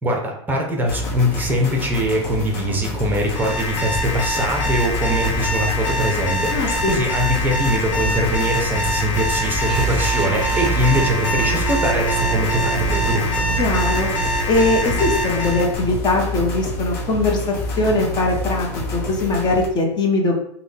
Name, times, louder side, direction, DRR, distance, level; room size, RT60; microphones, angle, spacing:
voice 1, 0.0-13.4, equal, 10° right, 0 dB, 0.8 m, -22 dB
sound 1, 0.9-19.7, left 1 dB, 55° left, 1.0 m, -28 dB
Alarm, 3.2-15.7, left 1 dB, 85° left, 1.0 m, -24 dB
voice 2, 6.5-7.0 13.6-14.1 14.5-18.7 18.9-20.4, left 2 dB, 25° left, 1 dB, 1.0 m, -20 dB
sound 2, 9.6-16.0, right 9 dB, 60° right, 0.5 m, -27 dB
3.6 x 2.3 x 3.6 m, 0.70 s
hypercardioid pair, 115°, 16 cm